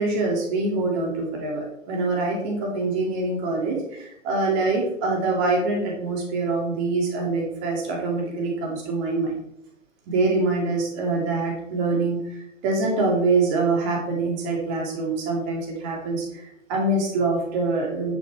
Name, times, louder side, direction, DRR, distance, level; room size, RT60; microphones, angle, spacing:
voice 1, 0.0-9.4 10.1-18.2, right 3 dB, 25° right, 0 dB, 2.4 m, -25 dB
10.0 x 5.3 x 4.5 m, 0.78 s
figure-of-eight pair, 135°, 39 cm